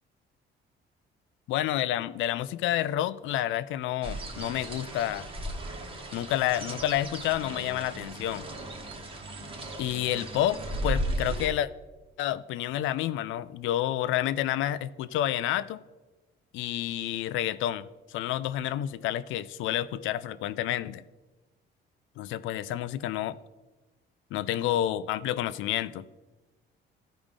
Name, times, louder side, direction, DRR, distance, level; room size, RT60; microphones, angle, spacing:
voice 1, 1.5-5.3 6.1-8.5 9.8-11.7 12.2-15.8 16.5-21.0 22.2-23.4 24.3-26.1, left 12 dB, 90° left, 16 dB, 0.4 m, -29 dB
sound 1, 4.0-11.5, right 1 dB, 25° right, 1.1 m, -36 dB
13.5 x 5.0 x 3.7 m, 1.2 s
cardioid pair, 150°, 20 cm